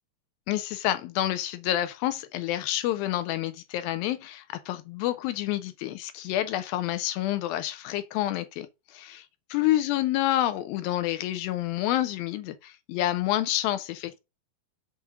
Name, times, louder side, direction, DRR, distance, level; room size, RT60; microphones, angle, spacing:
voice 1, 0.5-14.2, left 13 dB, 80° left, 2.3 m, -28 dB
6.9 x 4.2 x 4.9 m
omnidirectional pair, 4.3 m